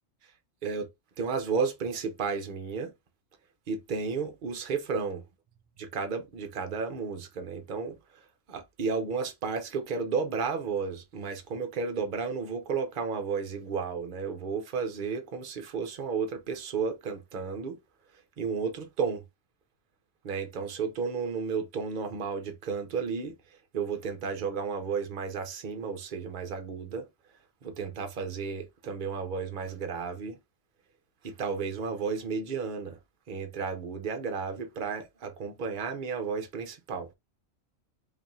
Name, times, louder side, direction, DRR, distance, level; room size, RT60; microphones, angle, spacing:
voice 1, 1.2-2.9 3.7-5.2 5.8-7.9 8.5-17.8 18.4-19.2 20.2-23.4 23.7-27.1 27.6-30.4 31.2-33.0 33.3-37.1, right 5 dB, 45° right, 0.8 m, -33 dB
5.0 x 2.6 x 2.6 m
omnidirectional pair, 1.4 m